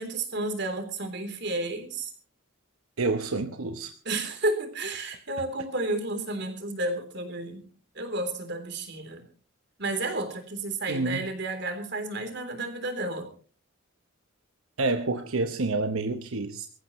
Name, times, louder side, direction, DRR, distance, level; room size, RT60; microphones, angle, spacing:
voice 1, 0.0-2.1 4.1-7.6 8.0-9.3 9.8-13.3, right 2 dB, 55° right, 6 dB, 3.5 m, -31 dB
voice 2, 3.0-3.9 10.9-11.3 14.8-16.7, right 3 dB, 90° right, 7 dB, 1.0 m, -28 dB
23.5 x 14.5 x 3.1 m, 0.40 s
head